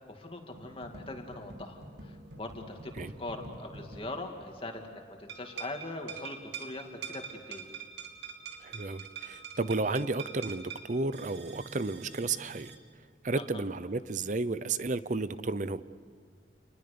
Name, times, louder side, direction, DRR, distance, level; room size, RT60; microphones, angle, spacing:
voice 1, 0.1-7.2 7.5-7.7 13.4-13.6, left 2 dB, 30° left, 3 dB, 2.5 m, -41 dB
sound 1, 0.5-5.0 5.3-12.8, right 5 dB, 75° right, 2.7 m, -46 dB
voice 2, 8.6-12.7 13.2-15.8, right 3 dB, 45° right, 14 dB, 0.7 m, -32 dB
29.5 x 20.5 x 6.9 m, 2.1 s
head